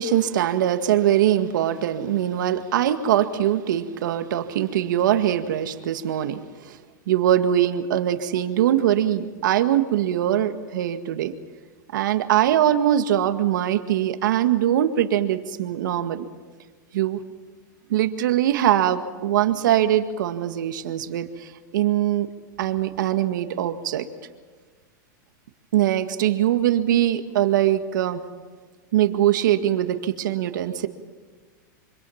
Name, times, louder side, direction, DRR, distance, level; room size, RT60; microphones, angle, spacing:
voice 1, 0.0-6.8 7.1-11.3 11.9-16.3 16.9-17.2 17.9-22.3 22.6-24.1 25.7-28.2 28.9-30.9, right 11 dB, 80° right, 8 dB, 1.8 m, -22 dB
25.5 x 25.5 x 5.9 m, 1.5 s
supercardioid pair, 130°, 10 cm